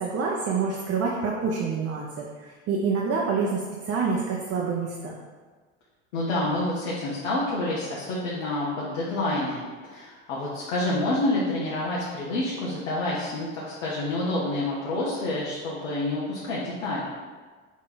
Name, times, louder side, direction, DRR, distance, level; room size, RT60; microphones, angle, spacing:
voice 1, 0.0-5.1, right 5 dB, 40° right, -2 dB, 0.7 m, -27 dB
voice 2, 6.1-17.0, left 2 dB, 75° left, -6 dB, 1.1 m, -28 dB
4.1 x 3.1 x 3.9 m, 1.4 s
hypercardioid pair, 85°, 37 cm